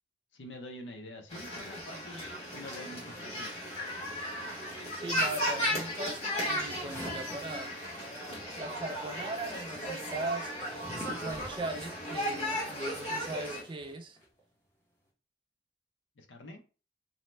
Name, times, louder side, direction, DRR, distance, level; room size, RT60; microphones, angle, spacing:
voice 1, 0.3-2.2 2.5-3.5 16.2-16.6, left 1 dB, 85° left, 0.6 m, -46 dB
sound 1, 1.3-13.6, equal, 35° left, 1.1 m, -35 dB
sound 2, 2.5-8.3 8.5-14.4, equal, 15° left, 0.7 m, -50 dB
voice 2, 5.0-7.7 8.6-10.6 11.2-14.2, right 2 dB, 25° right, 0.3 m, -39 dB
2.7 x 2.1 x 3.1 m
head